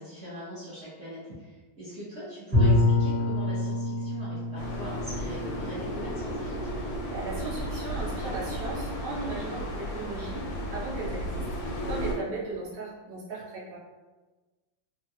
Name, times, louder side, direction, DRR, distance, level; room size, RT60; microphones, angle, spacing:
voice 1, 0.0-6.7, equal, 50° right, -11 dB, 0.8 m, -41 dB
Bowed string instrument, 2.5-7.3, left 2 dB, 20° right, 0.3 m, -27 dB
sound 1, 4.6-12.1, equal, 80° left, 1.4 m, -34 dB
voice 2, 7.1-11.5 11.8-13.8, right 3 dB, 80° right, -7 dB, 0.5 m, -37 dB
3.5 x 2.2 x 2.7 m, 1.2 s
omnidirectional pair, 2.2 m